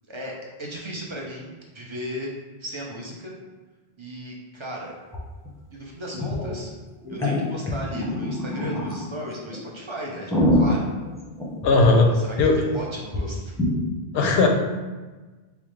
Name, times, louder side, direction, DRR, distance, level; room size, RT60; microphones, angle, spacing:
voice 1, 0.1-2.3 2.6-3.4 4.0-4.9 5.7-6.7 7.1-10.9 12.0-13.5, equal, 35° right, -3 dB, 0.6 m, -36 dB
sound 1, 5.1-5.2 5.5-5.6 6.1-6.5 7.0-9.0 9.5-9.6 10.0-12.1 12.4-12.5 12.7-12.8 13.1-13.2 13.6-13.7, left 1 dB, 5° left, 0.7 m, -24 dB
voice 2, 11.6-12.1 12.4-12.6 14.1-14.5, left 3 dB, 80° left, 2 dB, 0.9 m, -17 dB
5.4 x 2.0 x 3.2 m, 1.3 s
omnidirectional pair, 1.0 m